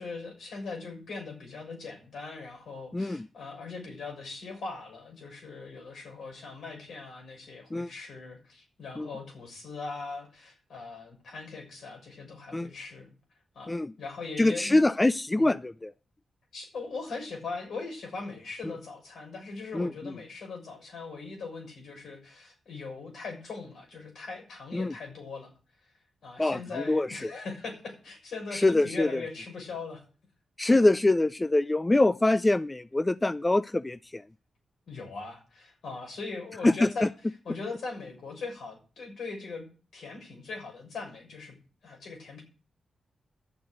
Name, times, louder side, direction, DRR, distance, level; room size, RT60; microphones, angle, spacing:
voice 1, 0.0-13.1 13.5-14.8 15.4-15.5 16.5-25.5 26.2-30.0 34.9-37.1 37.4-39.6 39.9-41.5 41.8-42.4, left 4 dB, 75° left, 2 dB, 6.6 m, -40 dB
voice 2, 2.9-3.3 7.7-7.9 9.0-9.1 12.5-12.7 13.7-13.9 14.4-15.9 19.7-20.1 24.7-24.9 26.4-26.6 26.9-27.2 28.5-29.2 30.6-34.2 36.6-37.1, left 2 dB, 25° left, 15 dB, 0.5 m, -24 dB
11.5 x 7.8 x 7.8 m, 0.36 s
supercardioid pair, 40°, 0 cm